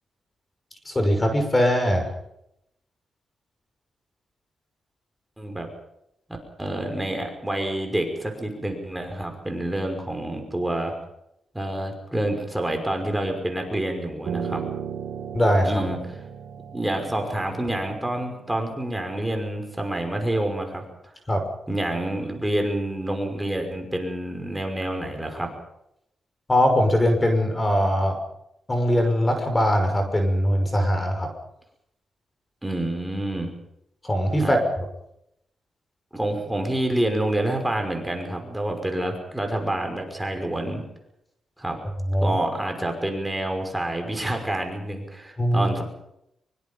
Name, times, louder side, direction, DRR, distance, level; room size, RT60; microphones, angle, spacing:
voice 1, 0.9-2.1 15.3-15.7 21.3-21.4 26.5-28.2 28.7-31.3 34.0-34.6 42.1-42.4 45.4-45.7, equal, 20° left, 5 dB, 5.8 m, -21 dB
voice 2, 5.4-5.7 6.6-10.9 11.5-14.6 15.6-16.0 16.7-20.9 21.7-25.5 32.6-33.5 34.4-34.6 36.1-40.8 41.6-41.8 42.2-45.8, right 1 dB, 10° right, 4 dB, 5.8 m, -28 dB
Piano, 14.3-19.5, right 7 dB, 70° right, 3.5 m, -36 dB
25.0 x 24.0 x 5.5 m, 0.79 s
cardioid pair, 95°, 0 cm